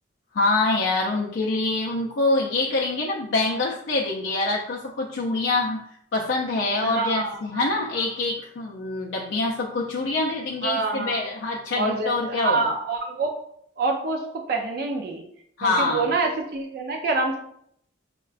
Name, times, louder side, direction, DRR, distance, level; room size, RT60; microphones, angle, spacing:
voice 1, 0.3-5.8 6.1-12.6 15.6-16.1, left 2 dB, 65° left, -2 dB, 0.4 m, -25 dB
voice 2, 6.8-7.4 10.6-11.2 11.7-13.3 13.8-15.2 15.6-17.4, right 3 dB, 50° right, 3 dB, 0.3 m, -26 dB
5.5 x 2.2 x 2.4 m, 0.70 s
head